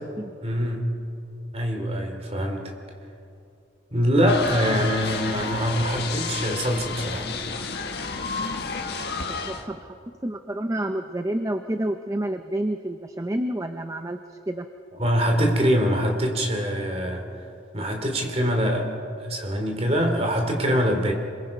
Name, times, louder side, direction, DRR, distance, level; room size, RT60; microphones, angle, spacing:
voice 1, 0.4-0.9 1.5-2.6 3.9-7.3 15.0-17.2 17.7-18.9 19.2-21.1, equal, 35° right, 3 dB, 2.9 m, -24 dB
sound 1, 4.3-9.7, left 4 dB, 60° left, 1.6 m, -31 dB
voice 2, 8.7-10.0 10.2-14.7, right 1 dB, 15° right, 7 dB, 0.6 m, -29 dB
27.0 x 22.0 x 5.4 m, 2.6 s
head